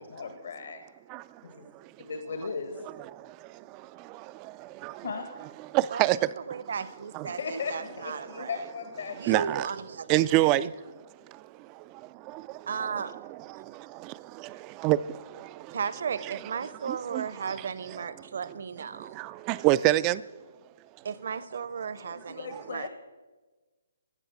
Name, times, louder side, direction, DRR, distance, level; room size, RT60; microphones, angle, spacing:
voice 1, 0.1-0.8 1.4-1.7 2.1-2.8 5.0-5.3 7.2-9.4 22.0-22.9, left 5 dB, 65° left, 1.5 m, -37 dB
voice 2, 3.1-5.0 5.7-6.7 7.1-7.3 9.3-9.7 10.1-10.7 11.3-11.8 12.3-13.0 13.3-15.8 16.8-17.3 18.9-20.2, right 16 dB, 20° right, 0.3 m, -28 dB
voice 3, 6.4-8.6 9.2-10.5 12.7-13.1 15.7-19.2 21.0-22.9, right 6 dB, 60° right, 0.8 m, -35 dB
15.0 x 7.2 x 7.0 m
hypercardioid pair, 160°, 0 cm